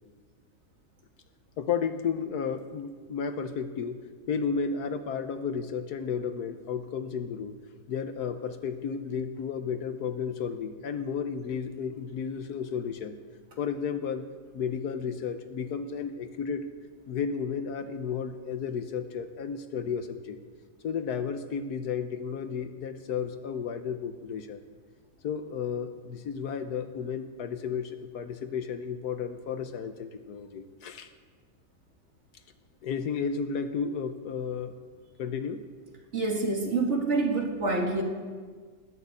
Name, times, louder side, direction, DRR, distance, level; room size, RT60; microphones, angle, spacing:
voice 1, 1.6-4.0 4.3-7.5 7.9-13.2 13.6-14.3 14.5-16.7 17.1-20.4 20.8-24.6 25.2-31.1 32.8-34.7 35.2-35.6, left 6 dB, 70° left, 9 dB, 1.3 m, -33 dB
voice 2, 36.1-38.0, right 3 dB, 40° right, 1 dB, 2.2 m, -27 dB
19.5 x 6.6 x 8.4 m, 1.6 s
omnidirectional pair, 1.8 m